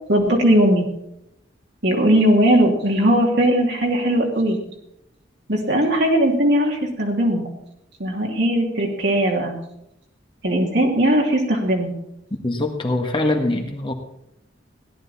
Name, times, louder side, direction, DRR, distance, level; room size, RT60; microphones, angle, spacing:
voice 1, 0.1-0.9 1.8-4.6 5.5-7.4 8.0-9.5 10.4-11.9, right 1 dB, 65° right, 0 dB, 2.8 m, -18 dB
voice 2, 12.4-13.9, left 2 dB, 25° left, 2 dB, 1.8 m, -23 dB
17.0 x 10.5 x 4.3 m, 0.79 s
head